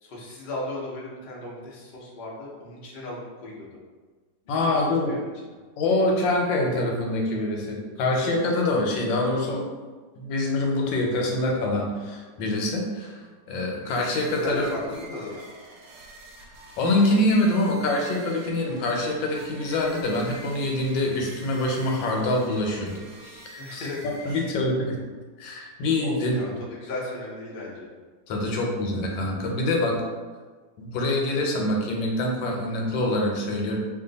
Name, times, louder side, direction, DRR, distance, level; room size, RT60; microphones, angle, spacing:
voice 1, 0.0-3.8 4.6-5.2 14.4-15.5 23.6-24.5 26.0-27.9, left 2 dB, 60° left, -4 dB, 0.5 m, -36 dB
voice 2, 4.5-5.2 5.8-9.7 10.1-14.7 16.8-23.9 24.2-25.0 25.4-26.4 28.3-30.0 30.8-33.8, left 1 dB, 85° left, 0 dB, 1.4 m, -25 dB
sound 1, 13.8-24.8, right 2 dB, 65° right, 1.0 m, -47 dB
2.8 x 2.6 x 3.9 m, 1.4 s
omnidirectional pair, 2.0 m